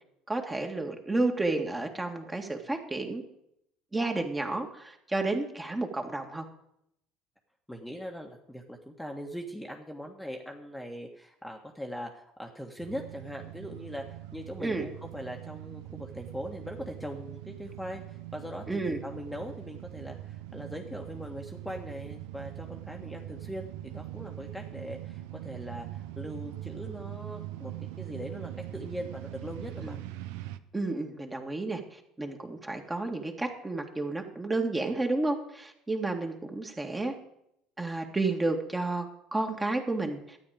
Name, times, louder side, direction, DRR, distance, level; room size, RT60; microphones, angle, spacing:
voice 1, 0.3-3.2 3.9-6.5 14.6-14.9 18.7-19.0 29.8-30.0 30.7-37.1 37.8-40.4, right 2 dB, 15° right, 3 dB, 2.0 m, -31 dB
voice 2, 7.7-27.7 28.0-30.0, equal, ahead, 1 dB, 1.5 m, -41 dB
sound 1, 12.8-30.6, right 14 dB, 75° right, 0.6 m, -42 dB
13.0 x 8.7 x 5.1 m, 0.77 s
hypercardioid pair, 70°, 0 cm